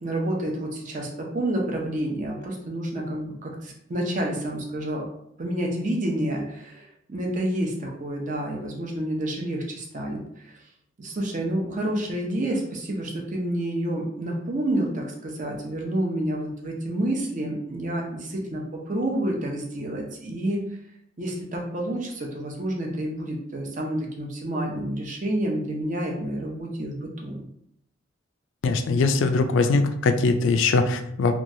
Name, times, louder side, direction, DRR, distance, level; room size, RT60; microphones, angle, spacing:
voice 1, 0.0-5.1 5.4-10.2 10.5-10.6 11.0-20.6 21.2-27.4, right 1 dB, 40° right, -1 dB, 0.6 m, -29 dB
voice 2, 28.6-31.4, left 3 dB, 70° left, 7 dB, 0.3 m, -21 dB
3.0 x 2.3 x 2.6 m, 0.75 s
head